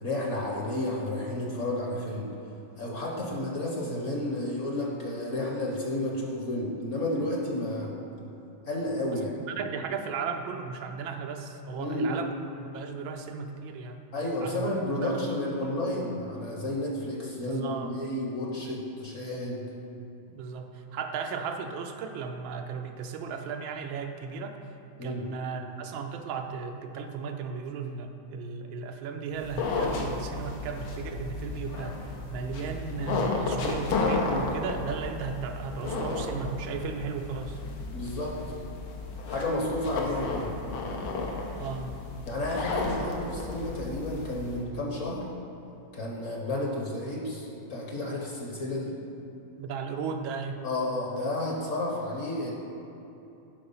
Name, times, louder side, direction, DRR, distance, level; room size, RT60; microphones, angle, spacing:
voice 1, 0.0-2.3 2.8-7.9 8.6-9.3 11.8-12.3 14.1-19.7 25.0-25.3 37.9-38.4 39.3-40.6 42.2-45.3 45.9-49.0 50.6-52.5, left 1 dB, 45° left, -2 dB, 1.1 m, -31 dB
voice 2, 9.1-12.3 12.6-14.0 14.4-14.7 15.0-15.3 17.4-17.9 20.3-24.6 25.0-37.6 41.6-41.9 49.6-50.6, right 5 dB, 80° right, 6 dB, 1.4 m, -35 dB
sound 1, 29.3-44.6, left 3 dB, 85° left, 1.8 m, -33 dB
11.0 x 4.7 x 5.5 m, 2.9 s
omnidirectional pair, 2.2 m